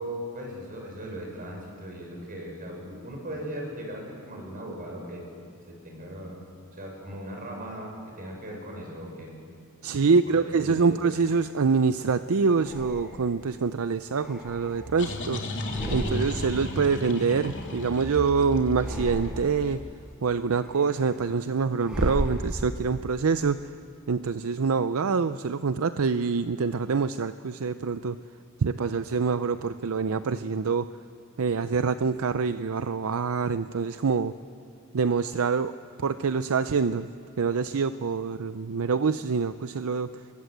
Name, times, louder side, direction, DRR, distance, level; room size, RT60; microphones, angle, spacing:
voice 1, 0.0-5.2 5.7-6.5 6.7-9.3 10.0-11.1, equal, 40° right, 0 dB, 6.5 m, -38 dB
voice 2, 9.8-15.4 15.9-19.8 20.2-23.6 24.1-28.2 28.6-30.9 31.4-34.3 34.9-35.7 36.0-37.1 37.4-40.1, right 5 dB, 70° right, 12 dB, 0.5 m, -25 dB
sound 1, 11.0-11.8 12.5-13.5 13.9-15.2 15.5-16.6 16.9-18.2 18.6-19.7 20.1-22.9, equal, 5° right, 6.9 m, -36 dB
sound 2, 14.5-20.0, left 1 dB, 55° left, 3.1 m, -35 dB
26.0 x 22.5 x 8.0 m, 2.4 s
head